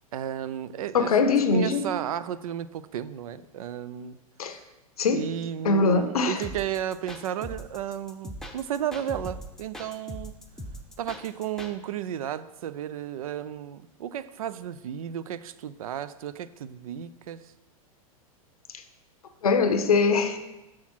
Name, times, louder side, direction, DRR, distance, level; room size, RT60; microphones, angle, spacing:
voice 1, 0.1-4.2 5.1-10.3 11.0-17.4, right 10 dB, 75° right, 15 dB, 0.4 m, -33 dB
voice 2, 0.9-1.9 4.4-4.6 5.0-5.2 5.6-6.4 19.4-20.4, left 4 dB, 85° left, 9 dB, 0.7 m, -22 dB
sound 1, 6.4-11.7, equal, 5° left, 0.7 m, -40 dB
6.1 x 5.6 x 4.4 m, 1.0 s
hypercardioid pair, 105°, 18 cm